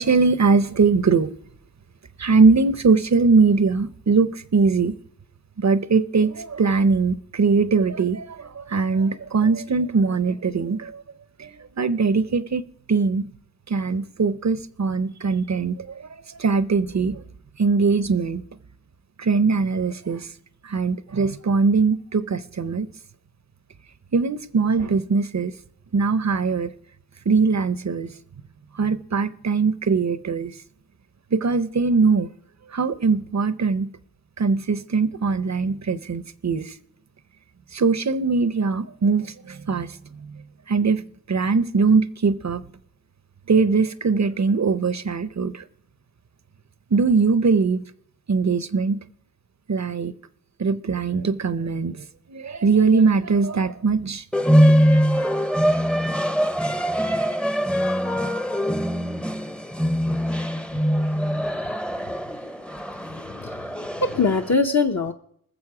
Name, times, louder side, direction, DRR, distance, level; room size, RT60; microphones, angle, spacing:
voice 1, 0.0-1.3 2.2-5.0 5.6-11.0 11.4-11.5 11.8-12.6 12.9-13.3 13.7-16.0 16.4-17.2 17.6-18.4 19.2-20.3 20.6-22.9 24.1-25.5 25.9-26.7 27.3-28.1 28.7-30.5 31.3-32.3 32.7-33.9 34.4-36.7 37.7-40.4 40.7-41.0 41.3-42.6 43.5-45.6 46.9-47.8 48.3-49.0 49.7-50.1 50.6-52.0 52.3-54.2 54.9-55.1, right 4 dB, 45° right, 0.6 m, -21 dB
sound 1, 54.3-64.5, equal, 5° left, 0.6 m, -22 dB
voice 2, 63.1-65.1, left 4 dB, 45° left, 0.7 m, -24 dB
20.0 x 7.1 x 4.8 m
wide cardioid pair, 55°, 38 cm